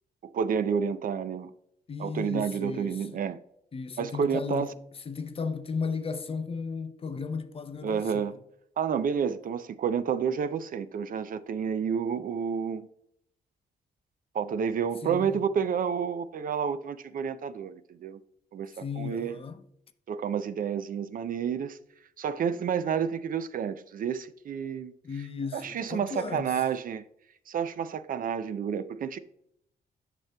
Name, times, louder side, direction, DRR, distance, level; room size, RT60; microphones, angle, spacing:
voice 1, 0.3-1.5 2.0-3.4 4.0-4.7 7.8-8.4 8.8-12.9 14.3-18.2 18.5-19.4 20.1-21.8 22.2-24.9 25.5-27.0 27.5-29.2, right 7 dB, 55° right, 0.4 m, -30 dB
voice 2, 1.9-3.1 3.7-4.8 5.1-8.3 15.0-15.4 18.7-19.6 25.0-26.6, left 5 dB, 35° left, 0.5 m, -35 dB
9.0 x 5.9 x 2.2 m
cardioid pair, 115°, 18 cm